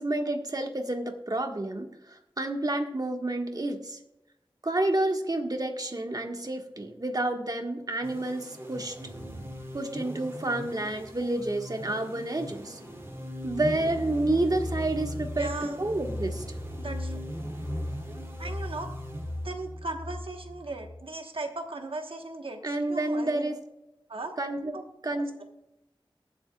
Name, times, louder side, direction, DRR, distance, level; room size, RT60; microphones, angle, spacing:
voice 1, 0.0-4.0 4.6-9.0 9.7-12.8 13.4-16.4 22.6-23.6 24.4-24.8 25.0-25.3, right 2 dB, 45° right, 4 dB, 1.5 m, -29 dB
sound 1, 8.0-19.8, equal, 30° right, 2.6 m, -41 dB
sound 2, 13.3-21.0, left 1 dB, 15° left, 2.9 m, -37 dB
voice 2, 15.4-15.8 16.8-17.2 18.4-18.9 19.4-22.6 22.9-23.5 24.1-24.3 24.7-24.8, right 2 dB, 80° right, 4 dB, 1.2 m, -37 dB
21.5 x 7.9 x 2.3 m, 0.89 s
wide cardioid pair, 40°, 9 cm